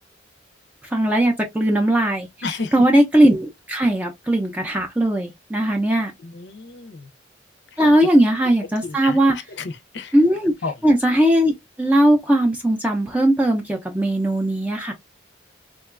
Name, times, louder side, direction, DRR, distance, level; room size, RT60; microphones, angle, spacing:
voice 1, 0.9-2.3 2.7-6.1 7.8-9.4 10.1-10.5 10.8-11.5 11.8-14.9, right 1 dB, 10° right, 0.4 m, -18 dB
voice 2, 2.4-2.7 6.2-7.1 8.8-9.2 9.5-10.1 10.6-10.7, left 4 dB, 65° left, 0.6 m, -31 dB
3.7 x 2.2 x 2.4 m
head